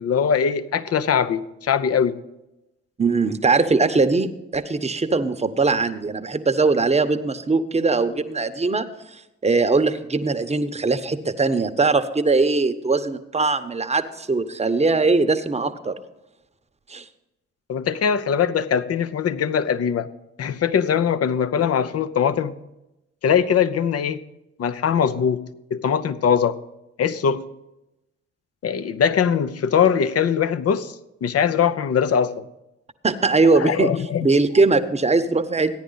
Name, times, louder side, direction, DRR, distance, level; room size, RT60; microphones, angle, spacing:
voice 1, 0.0-2.2 17.7-20.1 20.4-22.5 23.2-24.2 24.6-25.4 25.7-26.6 27.0-27.4 28.6-30.9 31.2-32.5 33.5-34.3, left 7 dB, 50° left, 14 dB, 0.8 m, -21 dB
voice 2, 3.0-8.9 9.4-16.0 16.9-17.0 33.0-33.9 34.2-35.8, right 3 dB, 20° right, 8 dB, 1.0 m, -20 dB
14.5 x 10.0 x 4.0 m, 0.91 s
hypercardioid pair, 50°, 32 cm